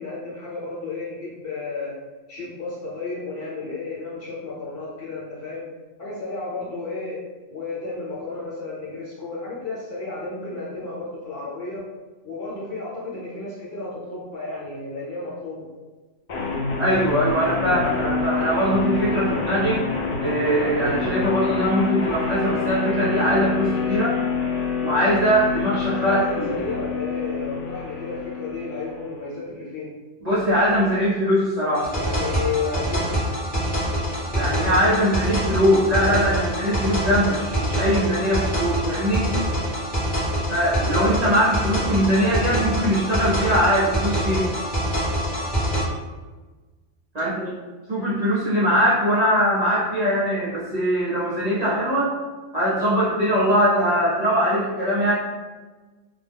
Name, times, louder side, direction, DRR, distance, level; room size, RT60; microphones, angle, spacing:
voice 1, 0.0-2.0 2.3-5.6 6.0-7.2 7.5-11.8 12.2-15.7 26.0-29.9 31.9-33.0 47.2-47.3, left 3 dB, 50° left, -7 dB, 1.0 m, -32 dB
sound 1, 16.3-29.3, left 5 dB, 90° left, 0.3 m, -27 dB
voice 2, 16.8-19.9 20.2-24.2 24.8-26.5 30.2-31.9 34.3-39.3 40.5-44.5 47.1-47.5 47.9-52.1 52.5-55.1, equal, 40° right, -10 dB, 0.6 m, -21 dB
sound 2, 31.7-45.8, equal, 10° left, 0.7 m, -25 dB
2.2 x 2.1 x 3.3 m, 1.3 s
omnidirectional pair, 1.3 m